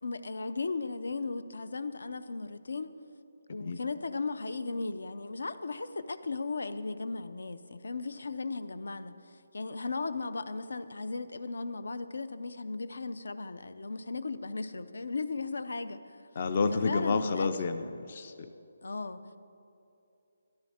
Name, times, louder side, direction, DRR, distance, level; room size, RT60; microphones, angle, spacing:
voice 1, 0.0-2.9 3.5-9.2 9.5-16.2 16.7-17.5 18.8-19.4, left 3 dB, 80° left, 13 dB, 0.6 m, -36 dB
voice 2, 16.3-18.5, left 4 dB, 30° left, 10 dB, 0.4 m, -30 dB
13.5 x 12.0 x 4.3 m, 2.7 s
hypercardioid pair, 175°, 0 cm